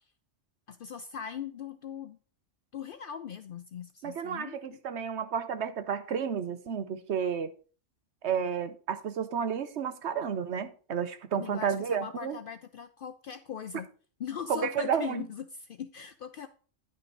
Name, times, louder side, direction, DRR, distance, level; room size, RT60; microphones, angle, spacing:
voice 1, 0.7-2.2 2.7-4.8 11.3-13.9 14.2-16.5, left 8 dB, 60° left, 0.6 m, -40 dB
voice 2, 4.0-7.5 8.2-12.4 14.5-15.3, right 7 dB, 65° right, 1.0 m, -31 dB
10.5 x 5.7 x 3.9 m
omnidirectional pair, 1.3 m